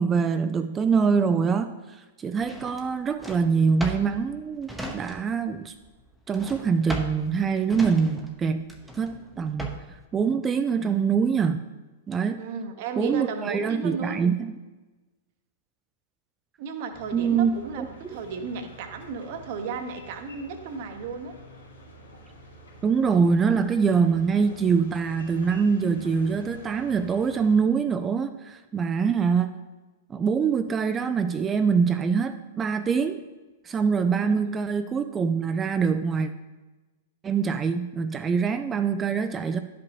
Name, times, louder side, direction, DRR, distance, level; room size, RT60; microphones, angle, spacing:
voice 1, 0.0-1.7 2.2-5.7 6.3-8.7 9.0-9.8 10.1-11.7 12.1-12.4 13.0-14.5 17.1-18.2 22.8-29.5 30.1-33.2 33.6-36.3 37.2-39.6, right 5 dB, 20° right, 9 dB, 0.3 m, -24 dB
Drawer open or close, 2.4-5.5 5.8-10.0, equal, 5° right, 0.8 m, -38 dB
voice 2, 12.4-14.2 16.6-21.3 34.1-34.5, right 5 dB, 50° right, 6 dB, 0.9 m, -34 dB
sound 1, 16.9-27.6, equal, 80° left, 2.2 m, -48 dB
11.0 x 5.3 x 2.9 m, 1.2 s
figure-of-eight pair, 105°, 0 cm